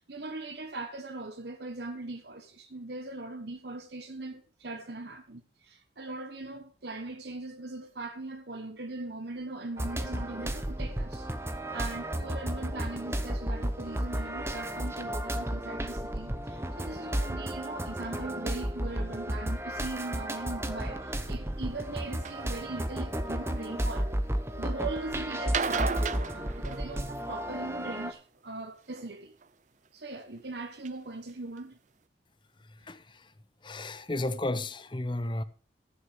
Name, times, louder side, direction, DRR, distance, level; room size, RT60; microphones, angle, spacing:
voice 1, 0.0-11.3 11.7-24.1 24.6-29.4 29.9-31.8, right 2 dB, 60° right, 1.1 m, -40 dB
sound 1, 9.8-28.1, right 1 dB, 15° right, 0.9 m, -33 dB
sound 2, 22.2-22.4 23.1-23.8 25.4-27.3 28.9-29.5 30.2-30.3 30.8-30.9 31.3-31.4 31.6-31.7, right 5 dB, 40° right, 0.5 m, -34 dB
voice 2, 32.6-33.3 33.6-35.4, left 2 dB, 25° left, 0.8 m, -33 dB
14.0 x 6.3 x 5.4 m
head